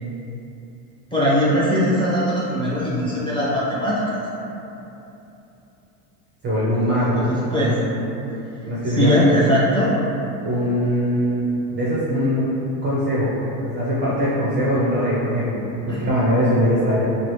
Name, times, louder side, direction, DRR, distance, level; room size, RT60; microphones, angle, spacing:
voice 1, 1.1-3.9 7.0-7.8 8.9-10.0 15.9-16.1, equal, 10° left, -9 dB, 0.7 m, -20 dB
voice 2, 6.4-7.2 7.6-8.0 8.7-9.2 10.4-11.5 11.7-12.5 12.8-13.3 13.6-17.1, equal, 25° right, -8 dB, 0.5 m, -21 dB
3.1 x 2.3 x 3.0 m, 2.9 s
supercardioid pair, 115°, 48 cm